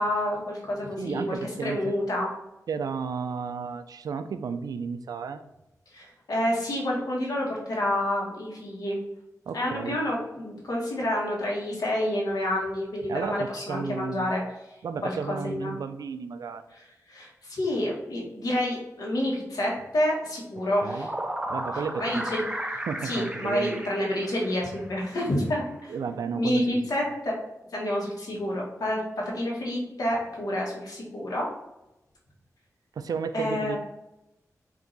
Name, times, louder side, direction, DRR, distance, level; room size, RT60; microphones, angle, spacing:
voice 1, 0.0-2.3 5.9-9.0 9.5-14.7 15.0-15.7 16.7-21.1 21.7-25.9 26.3-27.3 27.7-31.5 33.3-33.8, left 1 dB, 85° left, -3 dB, 1.5 m, -29 dB
voice 2, 1.0-1.9 2.7-5.4 9.5-10.0 13.1-14.3 14.8-16.6 20.8-21.1 21.5-22.2 22.9-23.8 25.9-27.1 33.0-33.8, right 6 dB, 85° right, 10 dB, 0.4 m, -33 dB
sound 1, 20.5-25.0, right 1 dB, 15° right, 0.5 m, -34 dB
4.7 x 2.7 x 3.9 m, 0.94 s
wide cardioid pair, 105°, 6 cm